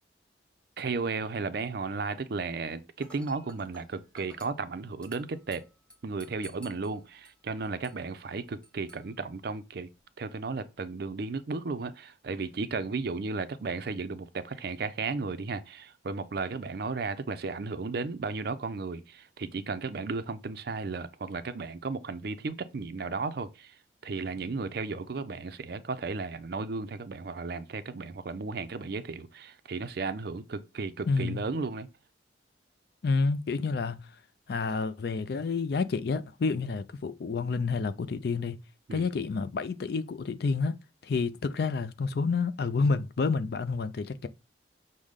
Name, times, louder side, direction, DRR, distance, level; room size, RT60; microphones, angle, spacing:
voice 1, 0.8-5.6 6.0-9.9 10.2-23.7 24.0-31.9 38.9-39.1, right 4 dB, 55° right, 0.4 m, -34 dB
Dishes pots and pans / Glass, 3.0-10.0, equal, 5° left, 1.1 m, -56 dB
voice 2, 31.1-31.4 33.0-34.1 34.5-38.6 38.9-40.8 41.0-44.3, left 4 dB, 55° left, 0.4 m, -29 dB
6.3 x 2.1 x 3.6 m
head